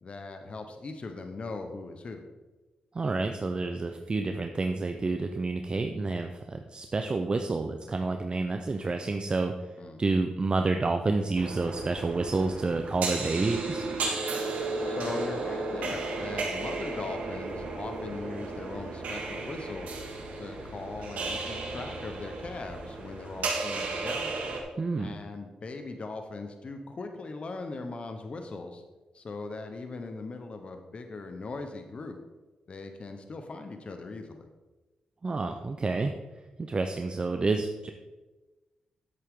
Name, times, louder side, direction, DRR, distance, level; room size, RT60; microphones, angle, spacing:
voice 1, 0.0-2.2 9.8-10.2 14.9-20.0 20.3-24.3 25.0-28.8 29.1-32.2 32.7-34.5, left 3 dB, 50° left, 6 dB, 1.1 m, -39 dB
voice 2, 2.9-9.5 10.0-13.8 24.8-25.1 35.2-36.1 36.6-37.9, right 3 dB, 40° right, 5 dB, 0.7 m, -29 dB
sound 1, 11.3-24.6, right 3 dB, 80° right, 1.9 m, -34 dB
9.6 x 8.3 x 3.8 m, 1.2 s
cardioid pair, 60°, 2 cm